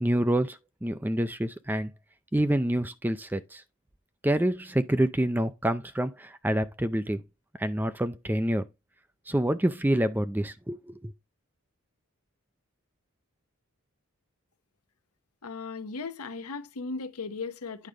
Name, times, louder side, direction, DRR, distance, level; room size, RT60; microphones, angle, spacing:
voice 1, 0.0-1.9 2.3-3.6 4.2-7.2 7.6-8.6 9.3-11.1, right 1 dB, 10° right, 0.4 m, -27 dB
voice 2, 15.4-17.9, left 4 dB, 85° left, 0.9 m, -37 dB
9.3 x 5.0 x 3.9 m
head